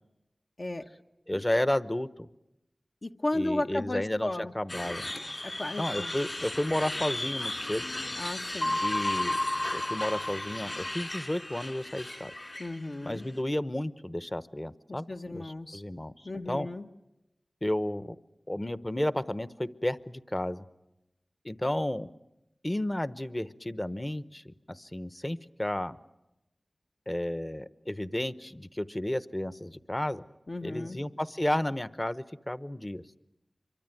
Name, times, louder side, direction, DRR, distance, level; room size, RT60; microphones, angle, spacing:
voice 1, 1.3-2.3 3.3-5.1 5.8-7.8 8.8-9.4 9.7-12.3 13.0-15.1 15.3-16.1 16.5-16.7 17.6-18.2 18.5-20.6 21.4-22.1 22.6-26.0 27.1-30.2 30.6-33.0, left 1 dB, 25° left, 15 dB, 0.9 m, -32 dB
voice 2, 3.0-4.5 5.4-6.1 8.2-8.8 12.6-13.2 14.9-15.8 16.2-16.9 30.5-31.0, left 2 dB, 60° left, 3 dB, 1.2 m, -34 dB
sound 1, 4.7-13.3, left 1 dB, 40° left, 2.5 m, -37 dB
sound 2, 8.6-11.2, left 1 dB, 85° left, 3.1 m, -31 dB
26.0 x 23.5 x 9.2 m, 0.91 s
wide cardioid pair, 50°, 0 cm